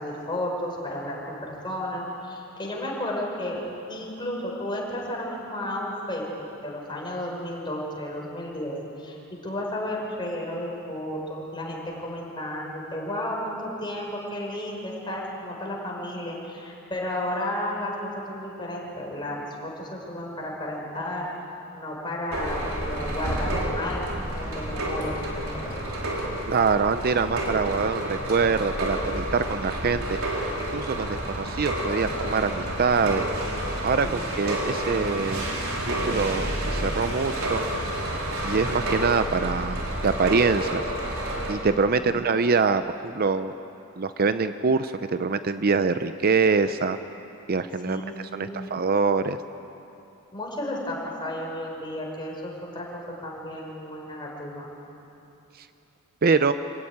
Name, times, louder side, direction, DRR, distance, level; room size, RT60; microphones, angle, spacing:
voice 1, 0.0-3.6 3.9-6.2 6.6-21.3 21.7-24.1 24.3-25.1 25.5-25.8 34.0-34.3 41.9-42.2 47.8-48.7 50.3-52.9 53.2-54.7, left 1 dB, 20° left, -2 dB, 5.0 m, -33 dB
sound 1, 22.3-41.5, right 1 dB, 80° right, 4.3 m, -29 dB
voice 2, 26.5-30.2 30.7-33.3 33.8-35.4 35.9-37.6 38.4-40.8 41.5-43.5 44.0-47.0 47.5-49.4 56.2-56.5, right 4 dB, 45° right, 11 dB, 0.6 m, -24 dB
26.0 x 16.0 x 9.5 m, 2.9 s
head